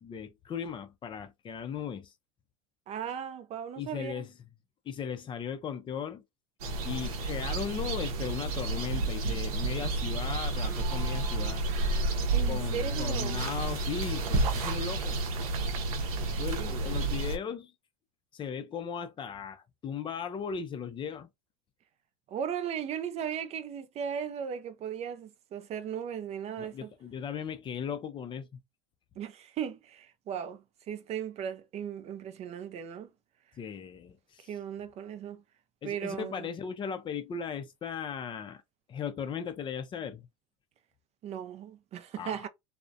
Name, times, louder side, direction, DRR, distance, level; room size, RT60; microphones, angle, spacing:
voice 1, 0.0-2.1 3.8-4.3 4.9-6.2 6.8-11.6 12.5-15.2 16.4-17.7 18.3-21.3 26.6-28.5 33.6-34.5 35.8-38.6 38.9-40.3 42.2-42.4, left 7 dB, 25° left, 0.4 m, -37 dB
voice 2, 2.9-4.2 12.3-13.5 16.2-16.3 16.6-16.7 22.3-26.9 29.2-33.1 34.5-35.4 35.8-36.5 41.2-42.5, right 8 dB, 35° right, 0.4 m, -37 dB
sound 1, 6.6-17.4, right 2 dB, 80° right, 0.6 m, -30 dB
2.3 x 2.1 x 2.6 m
hypercardioid pair, 100°, 18 cm